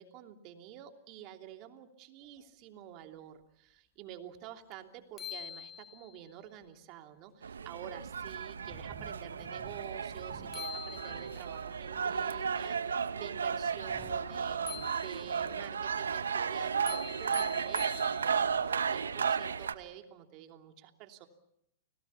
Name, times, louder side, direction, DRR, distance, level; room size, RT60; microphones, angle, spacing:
voice 1, 0.0-17.9 18.2-18.5 18.8-21.3, right 10 dB, 45° right, 5 dB, 3.0 m, -49 dB
sound 1, 4.7-4.8 5.2-6.3 10.2-10.3 10.5-11.6 14.7-15.6 16.9-18.6, left 9 dB, 20° left, 1.7 m, -45 dB
sound 2, 5.9-6.0 6.5-6.6 7.3-7.4 8.0-11.4 11.6-12.1 12.8-16.3 16.6-16.9, right 3 dB, 5° right, 6.6 m, -56 dB
sound 3, 7.4-19.7, right 6 dB, 85° right, 1.1 m, -34 dB
30.0 x 19.0 x 7.2 m, 0.76 s
hypercardioid pair, 115°, 0 cm